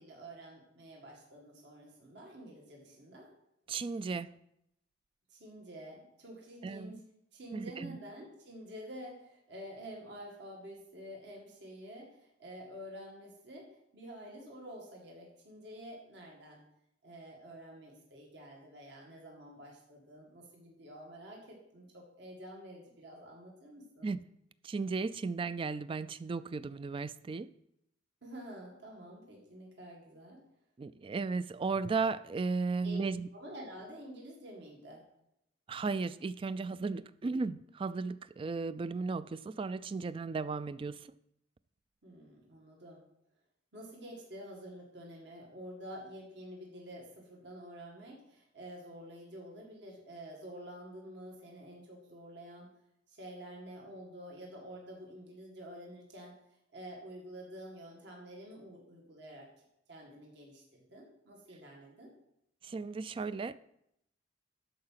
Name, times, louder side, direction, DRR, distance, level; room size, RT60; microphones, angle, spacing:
voice 1, 0.0-3.3 5.3-7.0 7.3-13.7 13.9-16.6 17.0-24.1 28.2-30.4 32.8-33.0 33.3-35.0 42.0-43.0 43.7-52.7 53.1-56.3 56.7-62.1, equal, 65° right, -2 dB, 2.0 m, -49 dB
voice 2, 3.7-4.3 6.6-7.0 7.5-8.0 24.0-24.2 24.6-27.5 30.8-33.3 35.7-41.0 62.6-63.5, right 4 dB, 30° right, 16 dB, 0.3 m, -35 dB
12.5 x 4.8 x 5.7 m, 0.78 s
head